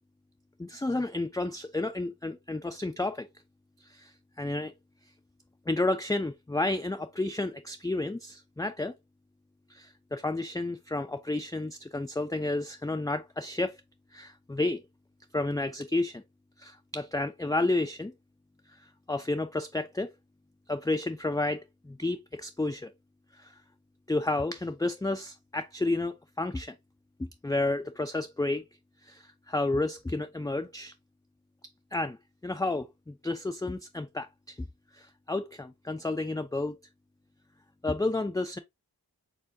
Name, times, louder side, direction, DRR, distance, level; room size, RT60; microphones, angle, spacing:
voice 1, 0.6-3.3 3.8-4.7 5.7-9.0 9.7-13.8 14.1-14.8 15.3-16.2 16.6-18.1 18.7-20.1 20.7-22.9 23.4-23.5 24.1-26.8 27.2-28.6 29.0-30.9 31.9-32.2 32.4-34.6 34.9-36.8 37.8-38.6, left 2 dB, 10° left, 0.4 m, -31 dB
4.5 x 3.8 x 2.6 m
wide cardioid pair, 40°, 39 cm